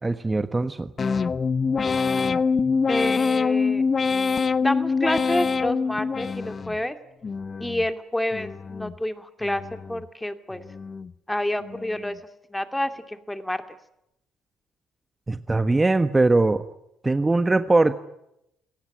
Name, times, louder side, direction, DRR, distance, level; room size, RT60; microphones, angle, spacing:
voice 1, 0.0-0.9 15.3-16.6 17.0-17.9, right 2 dB, 20° right, 10 dB, 1.4 m, -21 dB
sound 1, 1.0-6.8 7.2-7.9 8.3-9.0 9.4-10.1 10.5-11.1 11.6-12.1, left 5 dB, 40° left, 1.0 m, -25 dB
voice 2, 2.9-3.8 4.6-7.0 7.6-10.6 11.3-12.2 12.5-13.6, left 1 dB, 10° left, 8 dB, 2.5 m, -28 dB
27.5 x 19.0 x 9.8 m, 0.84 s
hypercardioid pair, 55°, 0 cm